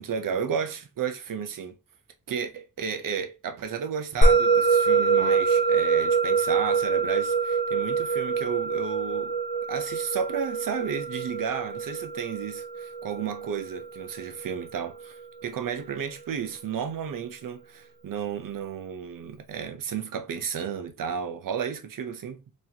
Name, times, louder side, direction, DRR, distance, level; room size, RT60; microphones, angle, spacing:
voice 1, 0.0-1.7 2.3-9.4 9.7-22.4, right 7 dB, 85° right, 0.7 m, -33 dB
Musical instrument, 4.2-14.8, right 4 dB, 25° left, 0.8 m, -25 dB
4.0 x 3.1 x 2.8 m
wide cardioid pair, 155°, 32 cm